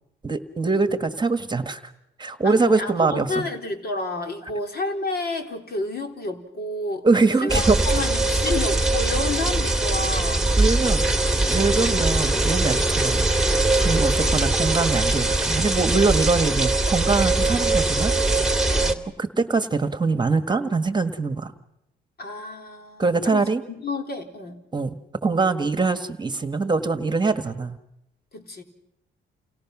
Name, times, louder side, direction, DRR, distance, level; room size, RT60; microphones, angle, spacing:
voice 1, 0.2-1.9 2.2-3.4 7.0-7.8 10.6-11.0 11.5-13.3 13.8-18.1 19.2-21.5 23.0-23.6 24.7-27.8, right 3 dB, 20° right, 10 dB, 1.6 m, -23 dB
voice 2, 2.4-7.1 7.4-10.5 11.5-11.8 14.0-14.5 18.7-19.0 22.2-24.6 28.3-28.6, left 2 dB, 55° left, 4 dB, 4.2 m, -30 dB
sound 1, 7.5-18.9, right 2 dB, ahead, 2.3 m, -21 dB
29.5 x 29.5 x 6.2 m, 0.85 s
cardioid pair, 90°, 20 cm